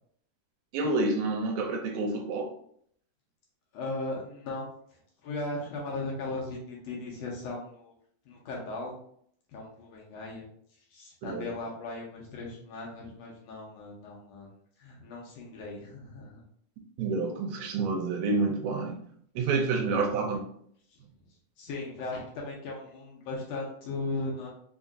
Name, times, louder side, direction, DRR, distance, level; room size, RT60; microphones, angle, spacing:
voice 1, 0.7-2.5 11.2-11.5 17.0-19.0 19.4-20.4, right 3 dB, 80° right, 3 dB, 1.9 m, -28 dB
voice 2, 3.7-4.7 5.2-7.9 8.3-9.0 9.5-10.4 10.9-14.5 14.8-16.4 19.8-20.0 20.9-21.0 21.6-24.5, left 2 dB, 75° left, -2 dB, 1.7 m, -37 dB
4.6 x 2.6 x 2.4 m, 0.64 s
omnidirectional pair, 3.4 m